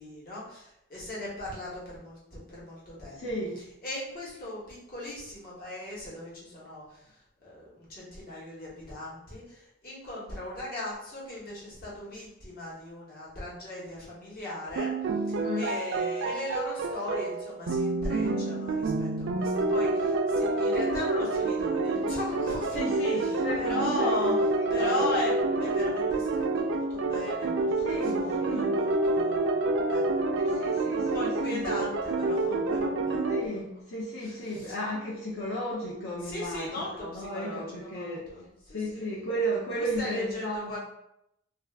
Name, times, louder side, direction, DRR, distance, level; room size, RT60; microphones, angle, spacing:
voice 1, 0.0-3.2 3.8-14.9 15.3-24.3 24.7-33.8 34.2-34.7 36.2-39.1 39.8-40.8, left 1 dB, 45° left, -6 dB, 1.0 m, -38 dB
voice 2, 3.1-3.6 15.4-15.7 22.7-24.3 24.7-24.9 27.8-28.7 30.4-31.7 33.3-38.3 38.7-40.8, equal, 70° left, -6 dB, 0.5 m, -34 dB
sound 1, 14.8-33.4, right 2 dB, 70° right, 0.3 m, -28 dB
2.4 x 2.3 x 3.3 m, 0.80 s
head